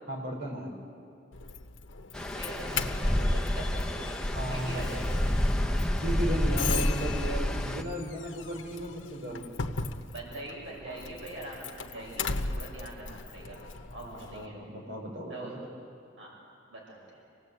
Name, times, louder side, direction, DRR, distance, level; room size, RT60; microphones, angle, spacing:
voice 1, 0.1-0.8 4.3-5.0 6.0-9.4 14.0-15.5, right 1 dB, 60° right, 0 dB, 5.0 m, -35 dB
Doorbell, 1.3-14.5, left 5 dB, 90° left, 1.0 m, -39 dB
Stream, 2.1-7.8, left 1 dB, 5° left, 0.9 m, -29 dB
voice 2, 2.3-4.1 4.5-5.3 10.1-13.6 13.9-14.6 15.3-15.5 16.2-16.3 16.7-17.2, right 2 dB, 90° right, -3 dB, 6.1 m, -43 dB
27.5 x 18.5 x 8.3 m, 2.5 s
head